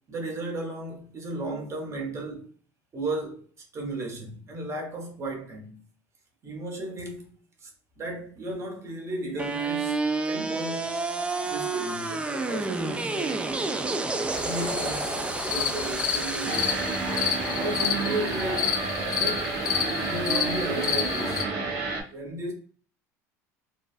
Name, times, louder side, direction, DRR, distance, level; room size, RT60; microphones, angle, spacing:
voice 1, 0.1-2.5 2.9-3.4 3.7-5.8 6.4-7.3 7.6-7.7 8.0-11.0 11.4-13.5 14.4-16.7 17.6-18.8 19.1-19.6 20.0-21.5 22.1-22.5, right 2 dB, 35° right, 1.1 m, -34 dB
sound 1, 9.4-19.4, right 3 dB, 15° right, 0.3 m, -30 dB
sound 2, 14.3-21.4, left 8 dB, 45° left, 0.6 m, -30 dB
sound 3, 16.5-22.0, right 3 dB, 65° right, 0.9 m, -30 dB
3.2 x 2.2 x 2.5 m
hypercardioid pair, 85°, 9 cm